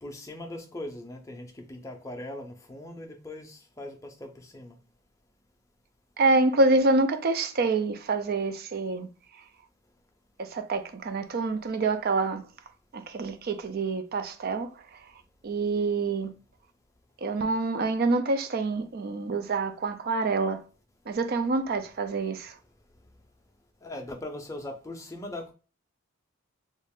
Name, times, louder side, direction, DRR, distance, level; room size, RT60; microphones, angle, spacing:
voice 1, 0.0-4.8 23.8-25.5, left 1 dB, 15° left, 0.5 m, -40 dB
voice 2, 6.2-9.1 10.4-12.4 12.9-14.7 15.4-16.3 17.2-20.6 21.1-22.5, right 3 dB, 45° right, 0.4 m, -26 dB
3.1 x 2.4 x 3.6 m
head